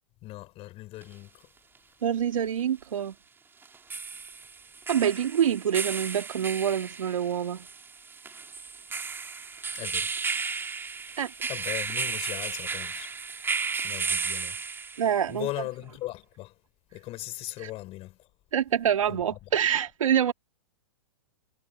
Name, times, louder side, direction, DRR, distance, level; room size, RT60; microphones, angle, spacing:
voice 1, 0.2-1.4 9.7-10.1 11.5-13.1 13.8-14.6 15.3-16.5 16.9-18.2 19.1-19.5, left 17 dB, 35° left, 6.1 m, -38 dB
sound 1, 1.0-1.1 3.6-15.2, right 5 dB, 15° right, 2.8 m, -34 dB
voice 2, 2.0-3.1 4.9-7.7 11.2-11.3 15.0-15.5 17.6-17.7 18.5-20.3, right 9 dB, 80° right, 2.3 m, -26 dB
hypercardioid pair, 120°, 17 cm